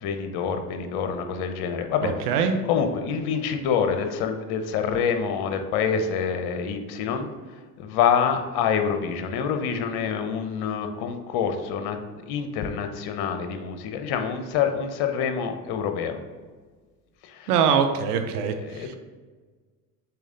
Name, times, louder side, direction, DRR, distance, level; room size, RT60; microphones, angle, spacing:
voice 1, 0.0-2.1 2.7-7.3 7.8-12.0 12.3-16.2 17.2-17.5 18.7-18.9, left 7 dB, 60° left, 7 dB, 1.1 m, -26 dB
voice 2, 2.0-2.5 17.5-18.9, right 7 dB, 80° right, 7 dB, 0.9 m, -23 dB
6.9 x 4.4 x 3.9 m, 1.4 s
hypercardioid pair, 90°, 44 cm